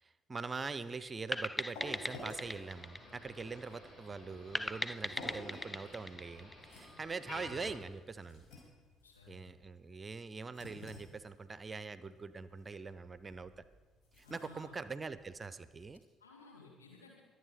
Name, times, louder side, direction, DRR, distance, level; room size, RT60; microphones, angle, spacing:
voice 1, 0.0-8.5 9.3-13.6 14.2-16.0, right 4 dB, 25° right, 14 dB, 0.7 m, -43 dB
sound 1, 1.0-16.0, left 1 dB, 55° left, 5.4 m, -54 dB
sound 2, 1.3-3.9 4.5-7.1, left 1 dB, 10° left, 0.5 m, -39 dB
Motor vehicle (road), 1.8-7.8, left 1 dB, 35° left, 5.2 m, -53 dB
voice 2, 9.0-9.5 14.2-14.8 16.2-17.2, left 4 dB, 80° left, -3 dB, 3.0 m, -57 dB
23.5 x 8.2 x 5.1 m, 1.3 s
figure-of-eight pair, 50°, 0 cm